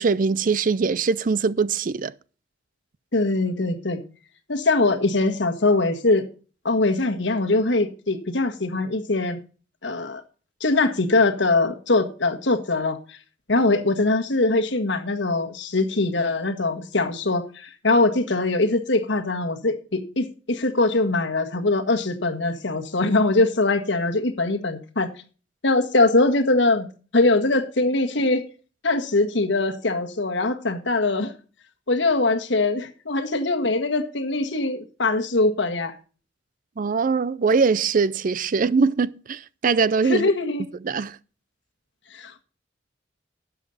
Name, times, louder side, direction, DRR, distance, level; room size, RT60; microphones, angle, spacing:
voice 1, 0.0-2.1 36.8-40.3 40.8-41.2, right 5 dB, 45° right, 0.4 m, -22 dB
voice 2, 3.1-4.0 4.5-6.3 6.6-9.4 9.8-10.2 10.6-13.2 13.5-25.1 25.6-26.9 27.1-28.4 28.8-31.3 31.9-36.0 40.1-40.6 42.1-42.4, left 2 dB, 70° left, 1.6 m, -22 dB
12.0 x 8.3 x 4.1 m
head